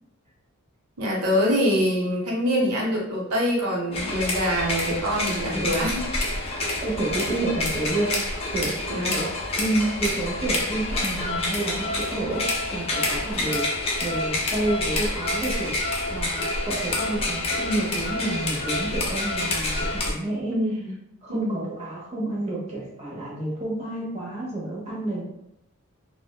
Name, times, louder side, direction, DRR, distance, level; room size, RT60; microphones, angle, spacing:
voice 1, 1.0-6.1 8.9-9.2 20.5-20.9 21.3-21.7, equal, 80° right, -1 dB, 0.7 m, -24 dB
sound 1, 3.9-20.1, left 2 dB, 25° left, 0.4 m, -28 dB
voice 2, 6.6-8.7 9.0-9.3 9.6-13.7 14.0-15.7 16.1-20.6 21.2-25.2, right 2 dB, 30° right, -5 dB, 0.7 m, -29 dB
3.2 x 2.0 x 2.2 m, 0.81 s
head